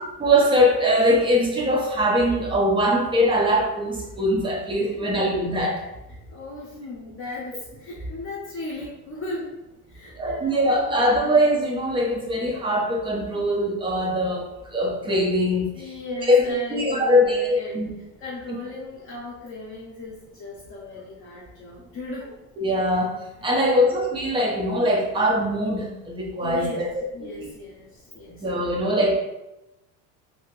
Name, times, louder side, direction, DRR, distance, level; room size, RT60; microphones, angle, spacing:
voice 1, 0.2-5.8 10.2-15.9 16.3-16.4 16.7-17.9 18.5-18.6 22.6-26.9 27.4-27.5 28.4-29.2, equal, 15° right, -1 dB, 0.3 m, -22 dB
voice 2, 4.8-5.1 6.3-9.6 9.9-11.1 15.7-17.8 18.2-22.4 23.5-23.7 26.4-26.8 27.1-28.5, left 2 dB, 30° left, -5 dB, 0.5 m, -37 dB
2.7 x 2.5 x 2.9 m, 0.95 s
cardioid pair, 140°, 42 cm